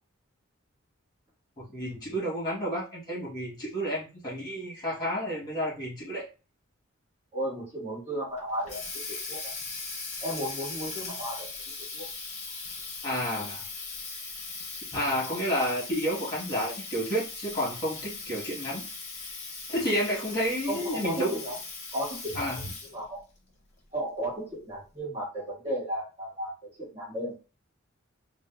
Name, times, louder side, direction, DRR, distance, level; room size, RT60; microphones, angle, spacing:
voice 1, 1.6-6.3 13.0-13.6 14.9-18.9 19.7-21.3 22.3-22.6, equal, 20° left, -5 dB, 1.1 m, -30 dB
voice 2, 7.3-8.8 9.1-9.5 10.2-11.5 11.9-12.0 20.6-21.5 21.9-23.2 23.9-26.5 26.8-27.4, equal, 30° right, -5 dB, 1.3 m, -34 dB
Water tap faucet, 8.4-23.1, left 4 dB, 35° left, 0.7 m, -39 dB
3.5 x 2.1 x 2.2 m, 0.32 s
head